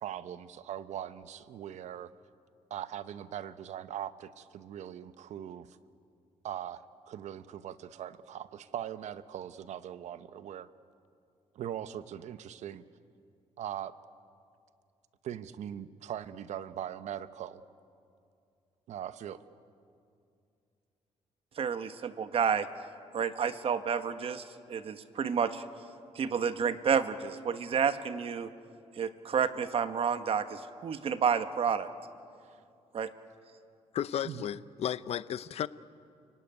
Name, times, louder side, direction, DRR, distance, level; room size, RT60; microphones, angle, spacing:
voice 1, 0.0-2.1 2.7-5.7 6.4-10.7 11.5-12.8 13.6-13.9 15.2-17.6 18.9-19.4 32.4-32.6 34.2-34.5, right 10 dB, 75° right, 14 dB, 0.9 m, -40 dB
voice 2, 21.6-22.7 23.1-25.6 26.1-28.5 29.0-31.9 32.9-33.1, right 7 dB, 55° right, 10 dB, 1.3 m, -30 dB
voice 3, 33.9-35.7, left 10 dB, 60° left, 16 dB, 0.6 m, -34 dB
29.0 x 18.0 x 9.6 m, 2.5 s
cardioid pair, 105°, 12 cm